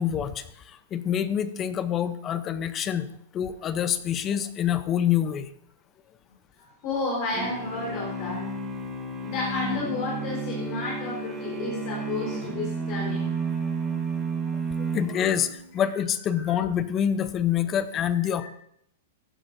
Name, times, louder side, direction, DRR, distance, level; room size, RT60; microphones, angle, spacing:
voice 1, 0.0-3.1 3.3-5.5 14.5-18.5, left 9 dB, 25° left, 13 dB, 0.7 m, -26 dB
voice 2, 6.6-8.5 9.2-13.3 15.2-15.3 15.9-16.0 16.3-16.5 18.1-18.5, left 3 dB, 45° left, -4 dB, 4.1 m, -32 dB
sound 1, 7.3-15.6, right 4 dB, 10° right, 1.9 m, -32 dB
15.5 x 10.5 x 2.7 m, 0.71 s
hypercardioid pair, 130°, 0 cm